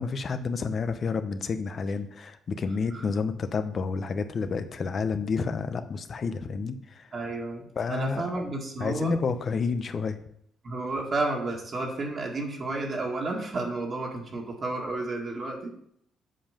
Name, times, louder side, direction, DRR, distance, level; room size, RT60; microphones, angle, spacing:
voice 1, 0.0-7.1 7.8-8.3 8.8-10.2, left 5 dB, 50° left, 10 dB, 0.8 m, -30 dB
voice 2, 7.1-9.2 10.6-15.7, right 2 dB, 45° right, -1 dB, 1.9 m, -31 dB
7.8 x 5.6 x 5.1 m, 0.69 s
cardioid pair, 90°, 0 cm